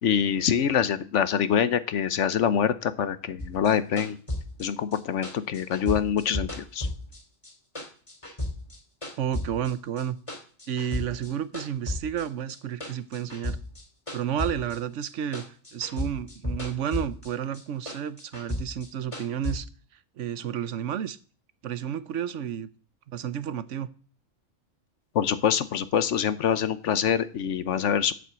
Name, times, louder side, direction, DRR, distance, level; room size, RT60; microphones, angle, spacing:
voice 1, 0.0-4.2 4.6-6.9 25.1-28.1, left 8 dB, 70° left, 14 dB, 1.1 m, -25 dB
sound 1, 3.4-7.5 7.8-9.7 10.0-11.3 11.5-15.1 15.3-17.3 17.5-19.6, left 1 dB, 25° left, 2.6 m, -34 dB
voice 2, 9.2-10.2 10.7-13.6 14.1-15.4 15.7-19.7 20.2-21.2 21.6-22.7 23.1-23.9, right 9 dB, 70° right, 15 dB, 1.0 m, -31 dB
8.3 x 7.6 x 8.1 m, 0.40 s
omnidirectional pair, 1.3 m